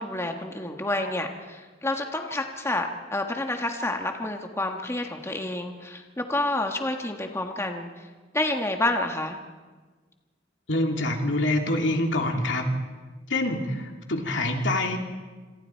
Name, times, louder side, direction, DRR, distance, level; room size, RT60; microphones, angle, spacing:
voice 1, 0.0-7.9 8.3-9.4, left 2 dB, 15° left, 4 dB, 1.5 m, -29 dB
voice 2, 10.7-12.6 13.3-15.0, left 1 dB, 80° left, 3 dB, 2.8 m, -25 dB
27.0 x 26.5 x 4.6 m, 1.3 s
head